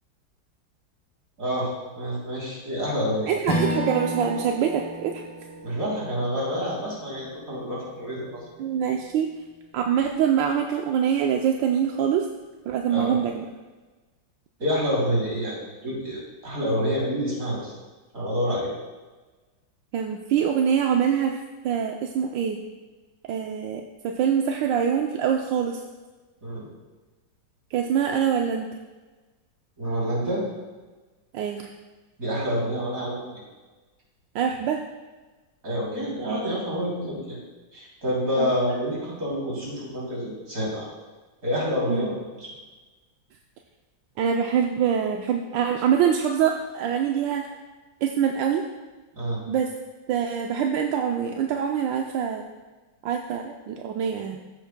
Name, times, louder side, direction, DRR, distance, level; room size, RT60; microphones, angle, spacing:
voice 1, 1.4-3.3 5.6-8.4 12.9-13.1 14.6-15.6 15.8-17.7 18.1-18.7 26.4-26.7 29.8-30.4 32.2-33.4 35.6-37.4 37.7-40.9 41.4-42.5 49.1-49.4, equal, 45° right, -5 dB, 3.5 m, -28 dB
voice 2, 3.3-5.2 8.6-9.3 9.7-12.3 12.7-13.5 19.9-21.3 21.6-22.6 23.3-25.8 27.7-28.7 31.3-31.7 34.3-34.8 38.4-38.8 41.9-42.2 44.2-47.5 48.0-48.7 49.5-49.7 50.1-52.4 53.0-54.4, right 8 dB, 80° right, 2 dB, 1.3 m, -24 dB
Strum, 3.4-8.1, equal, 20° left, 1.3 m, -32 dB
13.5 x 8.4 x 2.2 m, 1.2 s
omnidirectional pair, 2.0 m